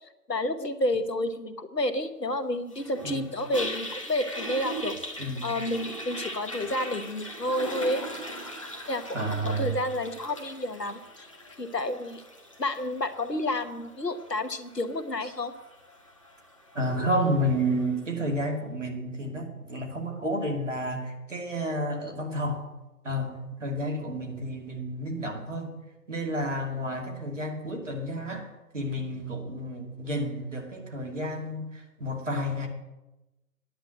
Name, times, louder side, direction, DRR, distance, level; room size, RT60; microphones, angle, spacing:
voice 1, 0.0-8.0 8.9-11.3 11.6-12.2 12.6-15.5, left 1 dB, 90° left, 10 dB, 1.2 m, -30 dB
Toilet flush, 2.7-17.9, equal, 20° left, 1.1 m, -40 dB
voice 2, 9.1-9.8 16.7-22.6 23.0-25.7 26.1-28.5 28.7-32.7, equal, 50° right, 2 dB, 2.4 m, -30 dB
10.0 x 7.5 x 7.7 m, 1.0 s
figure-of-eight pair, 155°, 47 cm